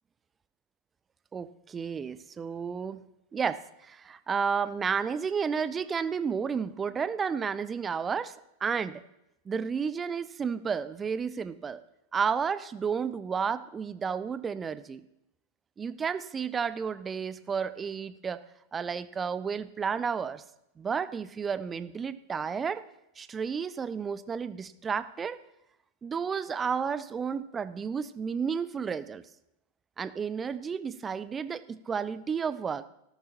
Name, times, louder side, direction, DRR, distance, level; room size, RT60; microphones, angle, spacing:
voice 1, 1.3-3.0 3.3-8.3 8.6-9.0 9.5-11.8 12.1-15.0 15.8-18.4 18.7-20.4 20.8-22.8 23.2-25.4 26.0-29.2 30.0-32.8, right 6 dB, 20° right, 15 dB, 0.5 m, -32 dB
16.5 x 13.5 x 3.0 m, 0.84 s
figure-of-eight pair, 90°, 0 cm